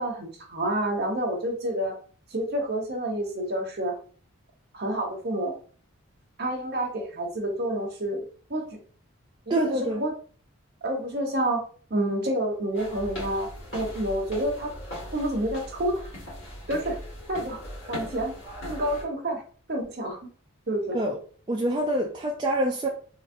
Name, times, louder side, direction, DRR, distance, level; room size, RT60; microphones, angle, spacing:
voice 1, 0.0-1.9 2.3-3.9 4.7-5.5 6.4-8.2 8.5-8.6 9.5-10.1 10.8-11.6 11.9-14.7 15.1-16.1 16.7-17.0 17.3-17.6 17.9-18.3 18.6-19.4 19.7-20.2 20.7-21.0, right 1 dB, 45° right, 0.9 m, -28 dB
voice 2, 9.5-10.0 20.9-21.2 21.5-22.9, right 1 dB, 20° right, 0.4 m, -26 dB
sound 1, 12.7-19.0, left 1 dB, 60° left, 1.6 m, -39 dB
3.9 x 2.5 x 2.6 m
head